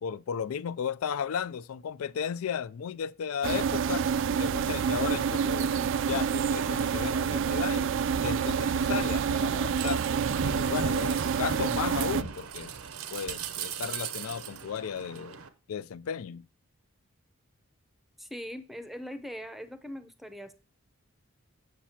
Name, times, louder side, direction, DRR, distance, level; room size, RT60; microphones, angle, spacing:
voice 1, 0.0-4.0 4.4-5.7 6.1-7.9 8.2-10.0 10.4-12.7 13.1-15.4 15.7-16.5, left 7 dB, 85° left, 0.4 m, -34 dB
sound 1, 3.4-12.2, right 7 dB, 60° right, 0.3 m, -28 dB
sound 2, 8.1-15.5, right 6 dB, 85° right, 0.8 m, -39 dB
voice 2, 18.2-20.5, equal, ahead, 0.6 m, -41 dB
7.4 x 7.1 x 2.8 m
head